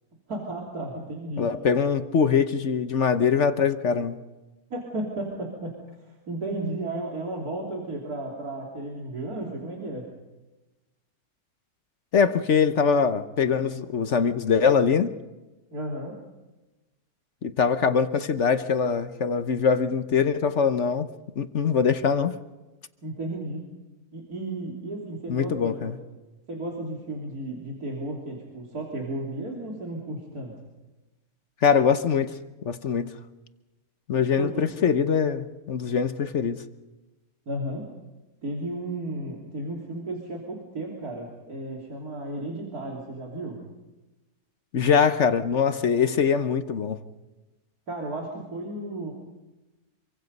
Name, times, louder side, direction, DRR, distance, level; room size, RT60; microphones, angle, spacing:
voice 1, 0.3-1.5 4.7-5.7 6.0-10.1 15.7-16.2 23.0-23.6 24.1-26.0 26.5-30.5 34.4-34.7 37.5-37.9 38.4-43.6 47.9-49.1, right 2 dB, 80° right, -2 dB, 3.7 m, -34 dB
voice 2, 1.4-4.2 12.1-15.1 17.4-21.1 21.4-22.3 25.3-26.0 31.6-32.3 32.6-33.1 34.1-36.6 44.7-47.0, left 6 dB, 55° left, 10 dB, 1.2 m, -23 dB
26.5 x 24.0 x 5.4 m, 1.1 s
omnidirectional pair, 1.6 m